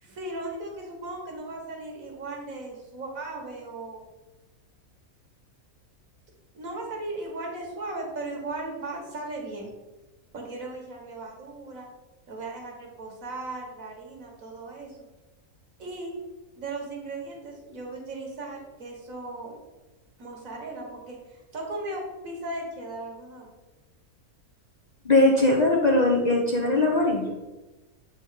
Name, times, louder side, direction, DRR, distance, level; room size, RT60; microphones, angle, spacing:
voice 1, 0.0-4.1 6.5-9.8 10.3-11.9 12.3-14.9 15.8-16.2 16.6-19.6 20.2-23.5, right 2 dB, 70° right, 0 dB, 1.8 m, -37 dB
voice 2, 25.0-27.4, left 2 dB, 40° left, -1 dB, 0.7 m, -20 dB
7.8 x 4.5 x 3.7 m, 1.1 s
omnidirectional pair, 1.5 m